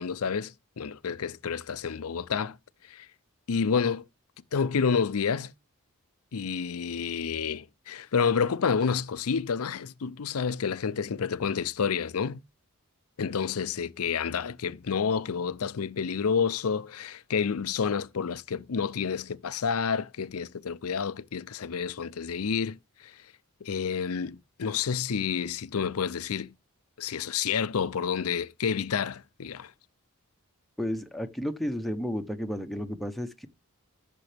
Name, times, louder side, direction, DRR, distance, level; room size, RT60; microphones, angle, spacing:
voice 1, 0.0-2.6 2.9-3.1 3.5-4.0 4.5-5.5 6.3-12.4 13.2-22.8 23.6-26.5 27.0-29.7, left 6 dB, 75° left, 0.6 m, -29 dB
voice 2, 30.8-33.5, equal, ahead, 0.9 m, -32 dB
14.5 x 6.8 x 3.4 m
head